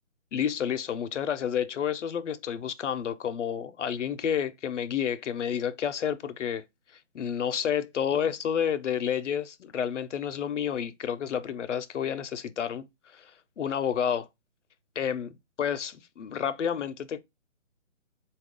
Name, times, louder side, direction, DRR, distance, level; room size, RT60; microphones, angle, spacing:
voice 1, 0.3-6.6 7.1-12.9 13.1-13.3 13.6-14.3 15.0-15.3 15.6-17.2, left 8 dB, 65° left, 0.6 m, -30 dB
4.1 x 2.4 x 3.5 m
hypercardioid pair, 175°, 39 cm